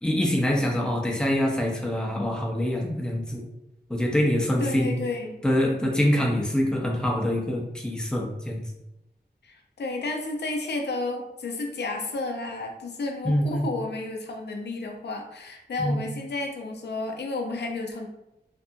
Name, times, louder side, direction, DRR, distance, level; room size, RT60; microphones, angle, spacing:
voice 1, 0.0-3.5 3.9-5.0 5.4-8.6 13.2-13.7 15.8-16.0, left 1 dB, 5° left, -1 dB, 0.6 m, -25 dB
voice 2, 4.6-5.4 9.4-18.1, left 2 dB, 75° left, 2 dB, 0.5 m, -32 dB
2.6 x 2.5 x 2.3 m, 0.89 s
wide cardioid pair, 60°, 18 cm